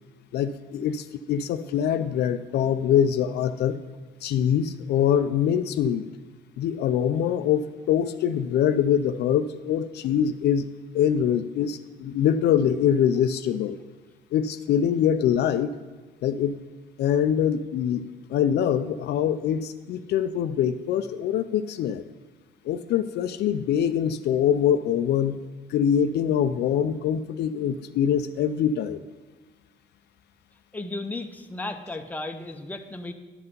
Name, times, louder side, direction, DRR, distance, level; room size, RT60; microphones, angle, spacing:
voice 1, 0.3-3.8 4.2-6.1 6.6-10.7 10.9-13.8 14.3-15.7 16.2-16.6 17.0-18.0 18.3-22.0 22.7-25.4 25.7-29.0, left 9 dB, 65° left, 10 dB, 0.5 m, -24 dB
voice 2, 30.7-33.1, left 2 dB, 10° left, 6 dB, 0.7 m, -34 dB
11.0 x 5.7 x 5.3 m, 1.3 s
cardioid pair, 120°, 18 cm